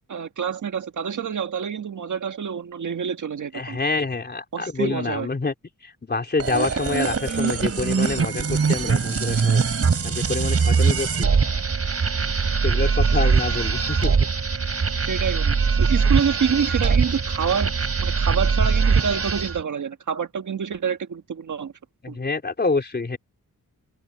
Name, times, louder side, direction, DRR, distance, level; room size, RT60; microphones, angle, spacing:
voice 1, 0.1-3.8 4.5-5.3 15.1-17.7 18.0-21.7 22.1-22.2, right 7 dB, 60° right, 1.7 m, -27 dB
voice 2, 3.5-5.5 5.8-9.6 10.0-11.3 12.6-14.1 22.0-23.2, left 3 dB, 30° left, 3.8 m, -27 dB
sound 1, 6.4-19.6, right 5 dB, 45° right, 3.4 m, -22 dB
open air
wide cardioid pair, 150°, 33 cm